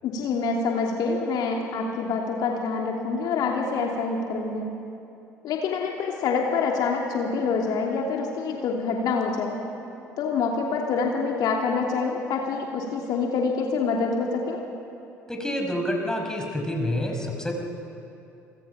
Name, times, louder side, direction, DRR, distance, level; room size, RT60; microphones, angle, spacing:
voice 1, 0.0-4.7 5.4-9.5 10.2-14.6, left 4 dB, 50° left, 0 dB, 2.8 m, -26 dB
voice 2, 15.3-17.5, left 1 dB, 5° left, 1 dB, 5.4 m, -28 dB
29.5 x 25.0 x 5.7 m, 2.8 s
figure-of-eight pair, 60°, 9 cm